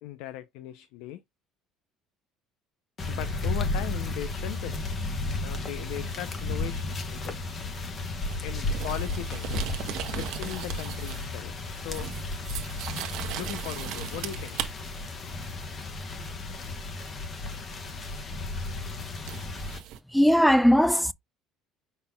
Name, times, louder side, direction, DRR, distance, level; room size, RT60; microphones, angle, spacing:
voice 1, 0.0-1.2 3.1-4.8 5.4-7.7 8.4-9.6 10.1-12.1 13.4-14.6, left 13 dB, 80° left, 0.5 m, -38 dB
sound 1, 3.0-19.8, left 2 dB, 30° left, 1.1 m, -33 dB
sound 2, 8.3-11.4 11.6-14.7 17.9-18.0 19.3-20.0, right 11 dB, 60° right, 0.9 m, -38 dB
voice 2, 20.1-21.1, equal, ahead, 0.3 m, -19 dB
5.4 x 4.1 x 2.3 m
cardioid pair, 150°, 0 cm